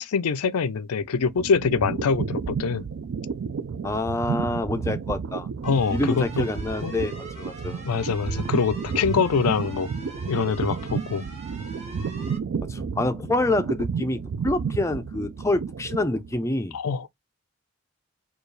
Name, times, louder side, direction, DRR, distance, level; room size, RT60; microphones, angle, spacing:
voice 1, 0.0-2.8 5.6-6.5 6.8-7.0 7.8-9.9 10.3-11.2 16.7-17.1, left 5 dB, 90° left, 0.5 m, -24 dB
sound 1, 1.0-16.5, right 6 dB, 60° right, 0.3 m, -32 dB
voice 2, 3.8-5.5 5.9-7.8 12.7-16.8, left 2 dB, 15° left, 0.4 m, -27 dB
sound 2, 5.6-12.4, right 3 dB, 30° right, 1.0 m, -42 dB
4.5 x 2.4 x 3.2 m
head